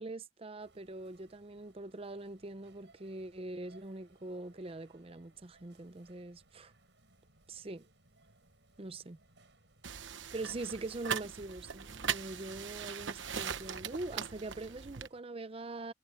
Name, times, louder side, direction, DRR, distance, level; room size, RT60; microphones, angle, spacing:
voice 1, 0.0-6.7 7.5-7.9 8.8-9.2 10.3-15.9, right 2 dB, 30° right, 0.7 m, -43 dB
sound 1, 0.6-15.2, right 2 dB, 70° right, 7.3 m, -66 dB
sound 2, 9.8-15.1, right 7 dB, 85° right, 1.0 m, -40 dB
head